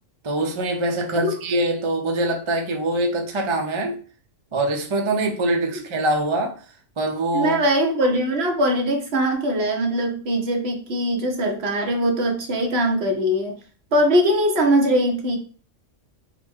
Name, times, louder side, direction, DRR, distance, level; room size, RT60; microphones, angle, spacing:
voice 1, 0.2-4.0 4.5-6.6 7.0-7.6, right 1 dB, 35° right, 0.5 m, -23 dB
voice 2, 7.3-13.5 13.9-15.4, equal, 60° right, 1.0 m, -21 dB
4.0 x 2.1 x 4.4 m
omnidirectional pair, 1.3 m